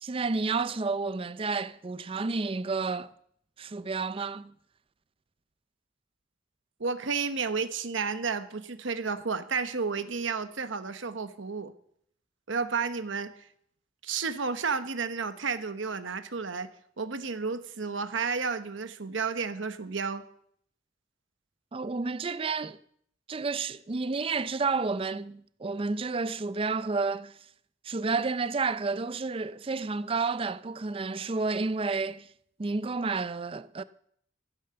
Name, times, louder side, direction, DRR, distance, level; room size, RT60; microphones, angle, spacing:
voice 1, 0.0-3.1 3.6-4.5 21.7-22.8 23.3-27.4 27.8-32.3 32.6-33.8, right 4 dB, 30° right, 0.4 m, -30 dB
voice 2, 6.8-11.7 12.5-13.3 14.0-16.7 17.0-20.2, right 5 dB, 70° right, 1.0 m, -32 dB
14.0 x 8.5 x 6.9 m
head